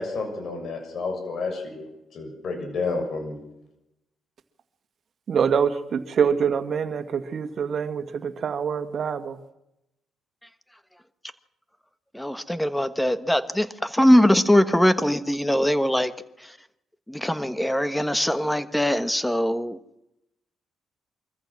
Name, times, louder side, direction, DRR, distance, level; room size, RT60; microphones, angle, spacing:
voice 1, 0.0-1.8 2.1-3.4, left 3 dB, 60° left, 6.9 m, -30 dB
voice 2, 5.3-9.4, right 7 dB, 55° right, 2.0 m, -25 dB
voice 3, 12.1-16.1 16.4-16.6 17.1-19.8, equal, 5° left, 1.4 m, -21 dB
24.0 x 14.5 x 7.5 m
cardioid pair, 90°, 0 cm